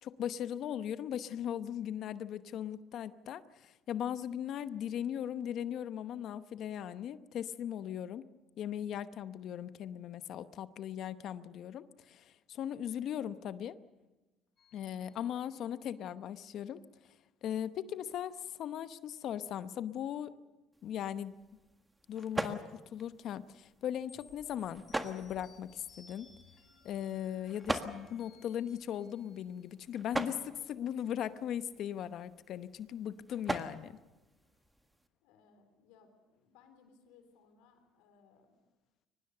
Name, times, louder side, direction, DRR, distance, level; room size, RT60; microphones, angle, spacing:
voice 1, 0.0-8.2 8.6-13.8 14.7-16.8 17.4-20.3 20.8-21.3 22.1-26.3 26.8-34.0, left 10 dB, 60° left, 13 dB, 0.9 m, -38 dB
sound 1, 14.6-16.1 24.1-29.8, left 5 dB, 40° left, 3.3 m, -62 dB
sound 2, 20.7-35.1, right 1 dB, 10° right, 1.7 m, -43 dB
voice 2, 35.2-38.6, left 5 dB, 85° left, 8 dB, 3.9 m, -64 dB
23.5 x 20.0 x 6.8 m, 1.1 s
supercardioid pair, 90°, 0 cm